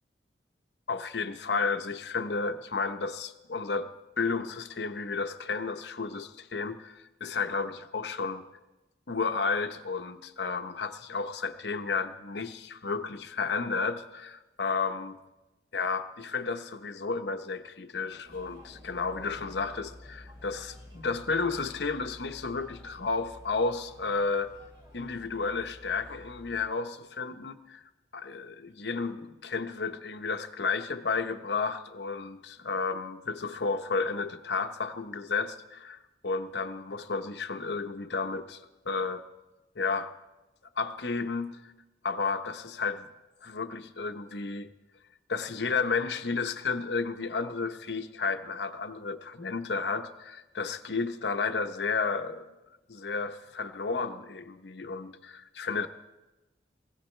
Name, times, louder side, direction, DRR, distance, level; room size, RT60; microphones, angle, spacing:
voice 1, 0.9-3.9 4.2-8.4 9.1-15.2 15.7-24.5 24.9-27.8 28.1-36.0 36.2-39.2 39.8-40.1 40.8-41.6 42.0-43.1 43.4-44.7 45.3-52.5 52.9-55.9, left 4 dB, 75° left, 8 dB, 0.9 m, -32 dB
sound 1, 18.2-26.6, left 1 dB, 25° right, 2.8 m, -51 dB
19.5 x 16.5 x 3.3 m, 1.1 s
head